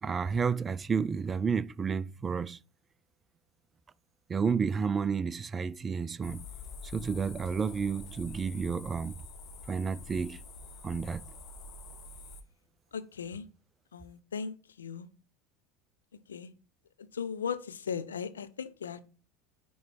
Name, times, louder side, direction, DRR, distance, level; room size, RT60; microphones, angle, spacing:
voice 1, 0.0-2.6 4.3-6.4 6.9-9.2 9.7-10.4 10.8-11.2, right 6 dB, 25° right, 0.3 m, -31 dB
sound 1, 6.2-12.4, left 3 dB, 40° left, 0.9 m, -46 dB
voice 2, 12.9-13.4 13.9-15.1 16.3-16.5 17.1-19.0, left 6 dB, 75° left, 0.6 m, -37 dB
9.0 x 3.1 x 4.3 m
figure-of-eight pair, 75°, 0 cm